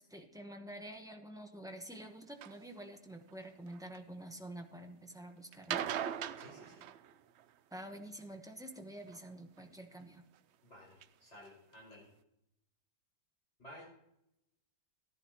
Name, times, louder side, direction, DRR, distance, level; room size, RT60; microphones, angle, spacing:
voice 1, 0.0-5.9 7.7-10.3, right 1 dB, 5° right, 4 dB, 0.8 m, -48 dB
sound 1, 2.4-2.6 3.3-4.0 5.5-7.5 9.1-9.6 10.3-10.4 11.0-11.1 11.5-11.6 11.7-11.8, right 10 dB, 90° right, 0.6 m, -40 dB
voice 2, 6.4-6.8 10.6-12.1 13.6-13.9, equal, 40° left, -3 dB, 5.8 m, -54 dB
14.5 x 11.0 x 3.0 m, 0.79 s
omnidirectional pair, 1.7 m